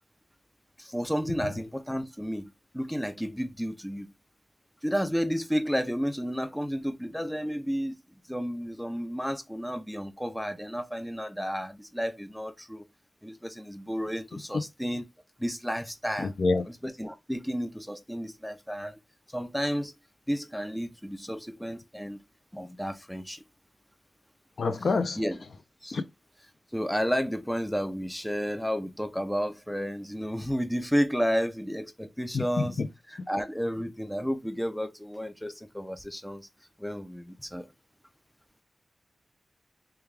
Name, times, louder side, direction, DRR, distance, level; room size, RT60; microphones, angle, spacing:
voice 1, 0.8-4.1 4.8-8.0 8.3-12.9 13.2-15.0 15.4-16.3 16.7-19.0 19.3-19.9 20.3-22.2 22.5-23.4 25.2-25.4 25.8-26.0 26.7-32.8 33.1-36.5 36.8-37.7, equal, 5° left, 0.4 m, -32 dB
voice 2, 16.2-16.6 24.6-25.2 25.9-26.0 32.3-32.9, left 3 dB, 65° left, 0.4 m, -27 dB
3.4 x 2.3 x 3.2 m
wide cardioid pair, 110°, 0 cm